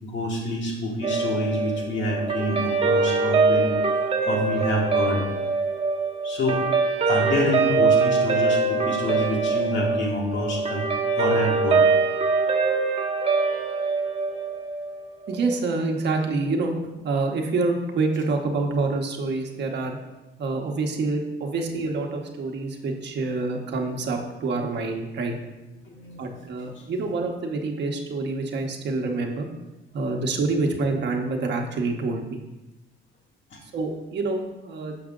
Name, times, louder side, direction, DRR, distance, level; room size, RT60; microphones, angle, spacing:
voice 1, 0.0-3.7 4.3-5.2 6.2-6.6 7.0-10.8 11.2-11.9 21.6-21.7 25.7-26.3 33.5-33.6, left 1 dB, 70° left, -3 dB, 1.8 m, -27 dB
Guitar, 1.0-15.6, right 4 dB, 30° right, 0.8 m, -23 dB
voice 2, 15.3-16.8 17.0-20.0 20.4-25.4 26.2-29.5 29.9-32.4 33.7-35.0, right 3 dB, 60° right, 2 dB, 1.0 m, -27 dB
7.0 x 5.0 x 3.7 m, 1.0 s
cardioid pair, 90°, 20 cm